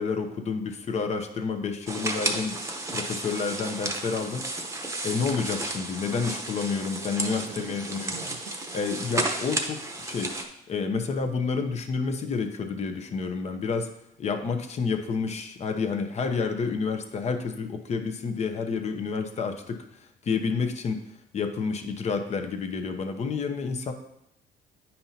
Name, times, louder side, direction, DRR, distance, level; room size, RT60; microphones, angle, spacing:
voice 1, 0.0-2.6 2.9-4.5 5.0-8.1 8.7-10.3 10.7-13.9 14.2-19.8 20.2-21.0 21.3-23.9, left 5 dB, 40° left, 6 dB, 0.8 m, -29 dB
sound 1, 1.9-10.4, right 2 dB, 15° right, 0.9 m, -32 dB
voice 2, 6.9-8.8, right 6 dB, 85° right, 7 dB, 0.8 m, -45 dB
9.0 x 5.5 x 2.8 m, 0.78 s
cardioid pair, 110°, 17 cm